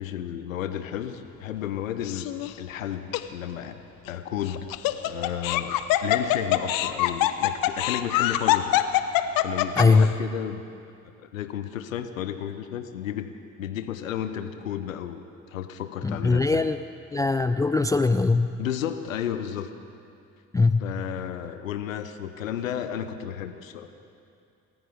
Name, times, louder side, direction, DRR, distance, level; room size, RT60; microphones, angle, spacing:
voice 1, 0.0-2.3 2.6-3.8 4.1-4.7 5.0-5.8 6.0-8.7 9.4-10.6 11.2-13.3 13.6-15.2 15.5-16.7 18.6-19.7 20.8-23.9, left 10 dB, 85° left, 9 dB, 0.7 m, -32 dB
Laughter, 2.0-2.5 3.1-3.2 4.5-10.1, left 14 dB, 60° left, 0.8 m, -24 dB
voice 2, 9.8-10.1 16.0-16.8 17.1-18.5 20.5-20.8, left 3 dB, 10° left, 11 dB, 0.3 m, -21 dB
27.0 x 14.5 x 3.5 m, 2.5 s
hypercardioid pair, 50°, 39 cm